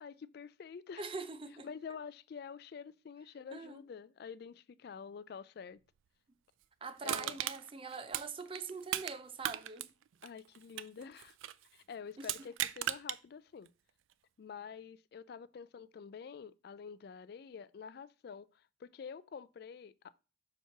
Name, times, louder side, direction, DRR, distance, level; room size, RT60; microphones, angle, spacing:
voice 1, 0.0-1.1 1.6-5.8 7.0-7.4 10.2-11.4 11.7-13.7 14.4-20.1, left 6 dB, 55° left, 0.3 m, -48 dB
voice 2, 1.0-1.7 3.5-3.8 6.8-9.9 12.2-12.3, right 4 dB, 30° right, 0.5 m, -43 dB
Crushing, 7.0-9.1 9.4-11.6 12.2-13.2 13.7-13.8, right 12 dB, 85° right, 0.4 m, -37 dB
7.2 x 3.0 x 5.7 m
head